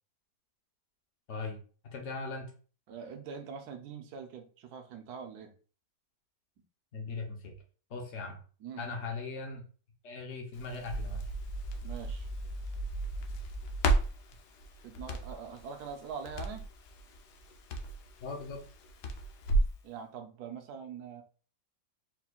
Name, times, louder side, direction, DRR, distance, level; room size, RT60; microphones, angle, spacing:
voice 1, 1.9-2.5 6.9-7.5 7.9-8.4 8.8-9.6 10.0-11.2 18.2-18.6, left 3 dB, 45° left, 1 dB, 1.2 m, -39 dB
voice 2, 2.9-5.5 8.6-8.9 11.8-12.3 14.8-16.6 19.8-21.2, right 6 dB, 65° right, 5 dB, 1.2 m, -43 dB
Crackle, 10.5-19.8, right 2 dB, 70° left, 1.3 m, -34 dB
4.3 x 4.2 x 2.4 m, 0.40 s
omnidirectional pair, 1.9 m